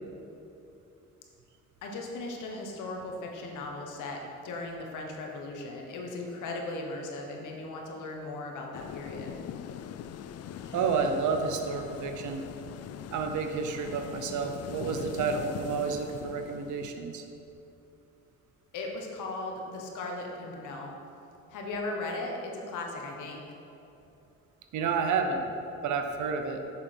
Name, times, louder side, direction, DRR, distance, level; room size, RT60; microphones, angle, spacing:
voice 1, 1.8-9.4 18.7-20.9 21.5-23.4, left 2 dB, 80° left, 1 dB, 1.3 m, -37 dB
sound 1, 8.7-16.9, left 9 dB, 55° left, 0.4 m, -41 dB
voice 2, 10.7-12.5 13.1-17.2 24.7-25.5 25.8-26.6, right 5 dB, 75° right, 5 dB, 0.9 m, -30 dB
7.0 x 6.7 x 4.5 m, 2.8 s
cardioid pair, 90°, 30 cm